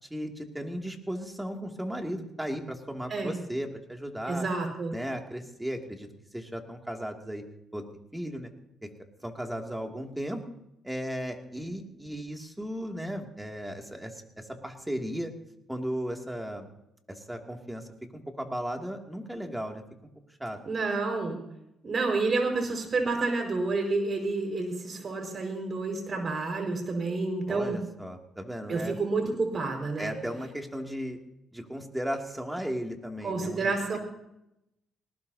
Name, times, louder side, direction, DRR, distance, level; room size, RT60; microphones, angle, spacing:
voice 1, 0.0-4.4 4.9-7.4 7.7-7.8 8.1-8.5 8.8-8.9 9.2-10.4 10.8-15.3 15.7-16.7 17.1-17.9 18.1-19.8 20.4-20.6 27.5-29.0 30.0-31.2 31.5-34.0, equal, 5° right, 2 dB, 2.5 m, -36 dB
voice 2, 4.3-4.9 20.6-21.4 21.8-27.8 28.7-30.1 33.2-34.0, right 3 dB, 45° right, 3 dB, 5.1 m, -29 dB
19.5 x 19.0 x 2.8 m, 0.83 s
cardioid pair, 90°, 0 cm